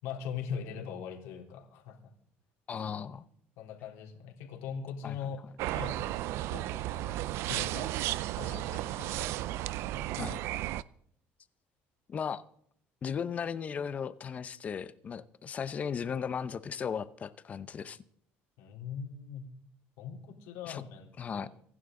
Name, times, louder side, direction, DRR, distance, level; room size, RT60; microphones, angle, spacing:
voice 1, 0.0-2.1 3.6-8.1 8.4-9.3 9.9-10.1 18.6-19.5 20.0-21.5, left 7 dB, 85° left, 1 dB, 3.6 m, -41 dB
voice 2, 2.7-3.2 5.0-5.4 10.2-10.4 12.1-12.4 13.0-18.0 20.7-20.8 21.2-21.5, left 7 dB, 30° left, 14 dB, 0.8 m, -36 dB
sound 1, 5.6-10.8, right 15 dB, 70° right, 0.5 m, -34 dB
25.0 x 11.0 x 3.9 m, 0.66 s
cardioid pair, 140°, 5 cm